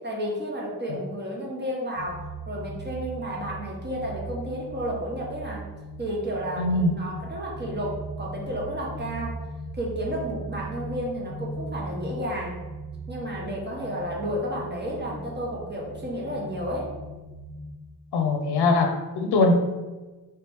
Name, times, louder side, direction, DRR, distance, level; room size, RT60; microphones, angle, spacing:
voice 1, 0.0-5.6 6.0-9.4 9.7-12.6 13.1-16.9, equal, 25° right, -2 dB, 1.1 m, -32 dB
sound 1, 2.0-17.7, right 2 dB, 40° left, 0.7 m, -38 dB
voice 2, 6.6-6.9 18.1-19.5, left 3 dB, 85° left, 4 dB, 0.6 m, -22 dB
3.1 x 2.9 x 3.5 m, 1.2 s
cardioid pair, 65°, 39 cm